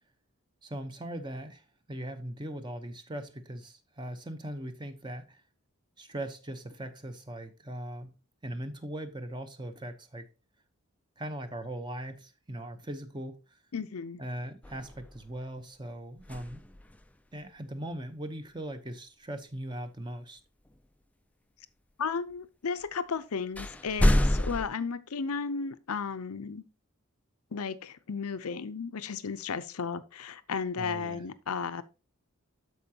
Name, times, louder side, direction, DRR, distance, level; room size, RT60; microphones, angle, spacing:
voice 1, 0.6-1.6 1.9-5.4 6.0-8.2 8.4-10.3 11.2-13.4 14.2-16.6 17.3-20.4 30.8-31.2, right 1 dB, 20° right, 0.8 m, -39 dB
voice 2, 13.7-14.2 22.0-26.6 27.5-31.8, left 5 dB, 85° left, 0.6 m, -34 dB
sound 1, 14.6-15.4 16.2-17.1 20.7-20.8 22.8-22.9 23.5-24.7, left 1 dB, 5° left, 0.3 m, -28 dB
12.5 x 4.8 x 2.8 m
head